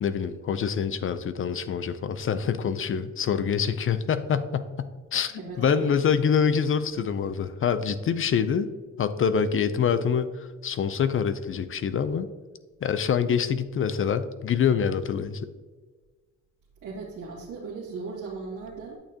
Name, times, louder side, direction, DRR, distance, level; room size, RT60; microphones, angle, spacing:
voice 1, 0.0-8.7 9.0-12.3 12.8-15.5, left 7 dB, 45° left, 12 dB, 0.5 m, -26 dB
voice 2, 5.4-5.9 16.8-19.0, right 4 dB, 85° right, -7 dB, 1.9 m, -37 dB
8.7 x 6.5 x 2.8 m, 1.4 s
cardioid pair, 90°, 30 cm